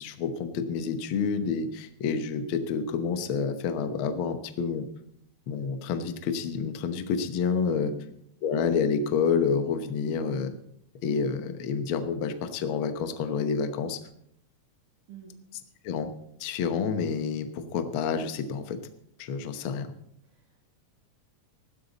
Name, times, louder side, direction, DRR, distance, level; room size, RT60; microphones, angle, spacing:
voice 1, 0.0-4.9 5.5-7.9 8.4-10.6 11.0-14.0 15.8-16.1 16.4-18.8 19.2-19.9, left 6 dB, 60° left, 8 dB, 1.4 m, -28 dB
voice 2, 15.1-15.4 20.2-20.6, right 9 dB, 85° right, -6 dB, 4.3 m, -47 dB
15.5 x 12.5 x 4.1 m, 0.73 s
omnidirectional pair, 3.5 m